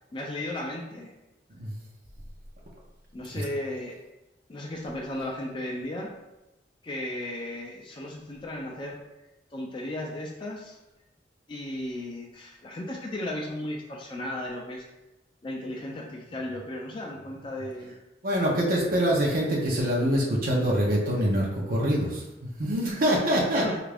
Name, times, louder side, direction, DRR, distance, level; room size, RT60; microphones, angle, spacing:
voice 1, 0.1-1.1 3.1-4.0 4.5-6.1 6.8-9.0 9.5-10.8 11.5-14.8 15.4-17.9 23.6-23.8, left 1 dB, 30° left, -1 dB, 0.4 m, -35 dB
voice 2, 18.2-23.6, equal, 50° right, -3 dB, 0.6 m, -25 dB
3.4 x 2.4 x 3.3 m, 0.99 s
head